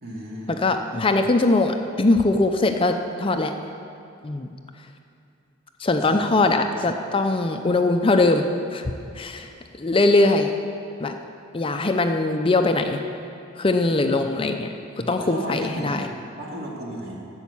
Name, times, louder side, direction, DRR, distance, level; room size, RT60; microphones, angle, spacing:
voice 1, 0.0-0.6 6.1-6.3 14.1-14.4 15.2-16.0 16.3-17.2, right 1 dB, 50° right, -3 dB, 2.3 m, -34 dB
voice 2, 0.6-3.5 4.2-4.5 5.8-8.4 8.7-8.9 9.2-9.5 9.8-10.5 11.0-11.1 11.5-13.0 13.6-14.7 15.0-16.1, left 2 dB, 25° left, 6 dB, 0.5 m, -21 dB
11.5 x 7.2 x 8.4 m, 2.5 s
head